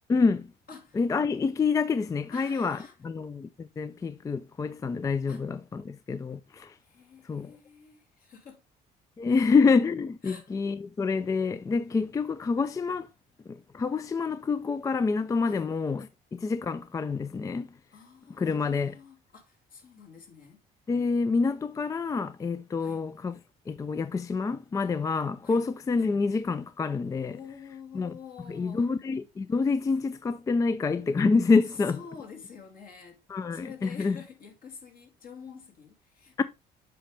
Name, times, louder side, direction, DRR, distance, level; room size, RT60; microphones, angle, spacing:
voice 1, 0.1-0.5 0.9-2.8 3.0-6.8 7.2-7.5 9.2-13.1 13.5-17.7 18.4-19.0 20.9-23.4 23.7-27.4 27.9-28.1 28.5-32.0 33.3-34.2 36.4-36.5, left 4 dB, 20° left, 0.3 m, -27 dB
voice 2, 0.7-1.0 2.3-2.9 5.3-5.4 6.8-8.6 9.3-9.6 10.2-10.5 15.5-15.7 17.9-20.6 22.8-23.1 25.4-25.6 27.3-28.9 31.9-33.2 33.5-36.4, left 6 dB, 60° left, 2.4 m, -48 dB
7.7 x 5.0 x 3.3 m
cardioid pair, 110°, 17 cm